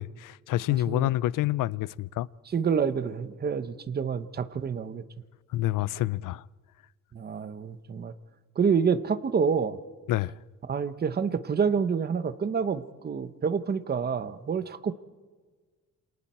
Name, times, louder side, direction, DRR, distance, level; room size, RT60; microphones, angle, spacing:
voice 1, 0.0-2.3 5.5-6.4 10.1-10.3, left 15 dB, 85° left, 0.6 m, -28 dB
voice 2, 2.5-5.0 7.1-8.1 8.6-9.8 10.7-14.9, right 6 dB, 30° right, 1.0 m, -28 dB
28.5 x 27.0 x 4.4 m
cardioid pair, 160°, 31 cm